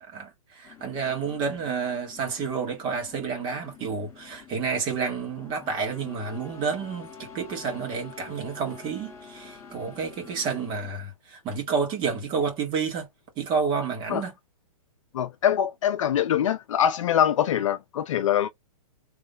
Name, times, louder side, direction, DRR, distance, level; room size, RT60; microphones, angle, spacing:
voice 1, 0.0-13.1 13.4-14.3, right 5 dB, 25° right, 1.8 m, -30 dB
sound 1, 0.6-10.9, left 6 dB, 15° left, 1.4 m, -47 dB
voice 2, 15.1-18.5, left 10 dB, 60° left, 0.6 m, -23 dB
3.6 x 3.2 x 3.9 m
hypercardioid pair, 150°, 19 cm